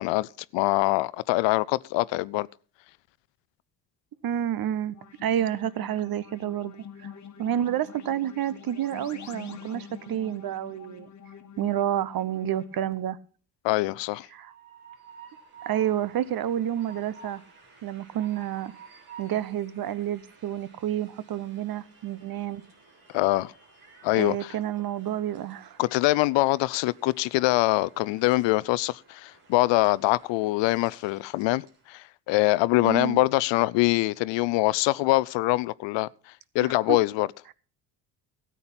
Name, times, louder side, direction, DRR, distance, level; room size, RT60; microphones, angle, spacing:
voice 1, 0.0-2.5 13.6-14.3 23.1-23.5 24.0-24.5 25.8-37.3, left 19 dB, 60° left, 0.5 m, -24 dB
voice 2, 4.2-5.0 5.2-7.1 7.4-11.1 11.6-13.2 14.3-14.5 15.7-17.4 17.8-18.7 19.2-22.6 24.1-25.8 32.8-33.2 36.6-37.0, right 11 dB, 45° right, 0.8 m, -29 dB
sound 1, 4.9-13.0, left 7 dB, 35° left, 1.5 m, -46 dB
Train, 14.1-31.9, right 4 dB, 70° right, 3.8 m, -53 dB
13.5 x 8.5 x 5.7 m
hypercardioid pair, 60°, 49 cm